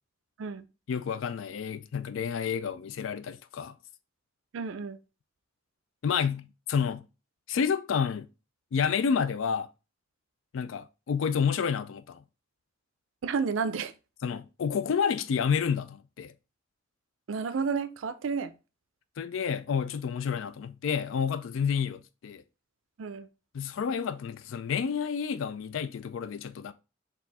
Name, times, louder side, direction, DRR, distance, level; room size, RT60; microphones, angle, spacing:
voice 1, 0.9-3.8 6.0-7.0 7.5-8.3 8.7-9.7 10.5-12.2 14.2-16.3 19.2-22.4 23.5-26.7, left 6 dB, 75° left, 0.4 m, -29 dB
voice 2, 4.5-5.0 13.2-13.9 17.3-18.5 23.0-23.3, right 5 dB, 80° right, 0.4 m, -31 dB
4.5 x 2.4 x 4.0 m
head